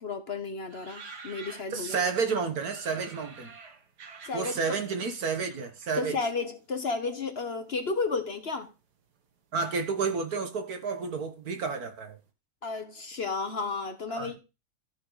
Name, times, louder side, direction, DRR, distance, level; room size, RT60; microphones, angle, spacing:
voice 1, 0.0-2.1 4.2-4.5 6.0-8.7 12.6-14.4, left 4 dB, 45° left, 1.1 m, -32 dB
sound 1, 0.7-2.2 2.6-6.5 6.8-7.7 8.3-8.9 9.1-9.2 9.4-11.8 12.0-12.2, right 4 dB, 85° right, 1.9 m, -49 dB
voice 2, 1.7-3.5 4.3-6.2 9.5-12.2 14.1-14.3, right 5 dB, 70° right, 1.9 m, -30 dB
14.0 x 5.8 x 4.0 m
omnidirectional pair, 1.7 m